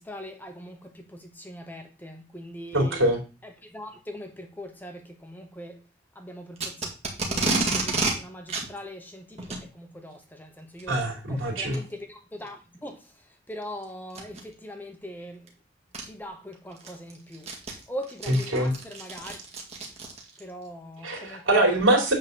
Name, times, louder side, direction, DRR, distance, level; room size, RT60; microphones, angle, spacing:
voice 1, 0.1-0.7 1.5-3.0 3.7-5.0 5.3-5.7 6.2-6.5 7.3-9.2 9.8-10.2 10.6-11.0 11.5-11.8 12.4-12.6 12.8-13.0 13.5-14.3 14.6-15.4 16.1-17.4 17.9-18.7 19.0-19.3 20.4-21.4, equal, 10° left, 1.0 m, -40 dB
voice 2, 2.7-3.2 10.9-11.8 18.2-18.7 21.0-22.1, right 1 dB, 70° right, 3.6 m, -23 dB
Packing tape duct tape, 6.6-8.1 8.5-8.7 9.4-9.6 10.8-11.0 11.7-11.8 12.5-12.6 14.1-14.4 15.5-15.6 15.9-16.0 16.5-20.4, right 3 dB, 30° right, 2.0 m, -29 dB
9.2 x 3.8 x 6.8 m
head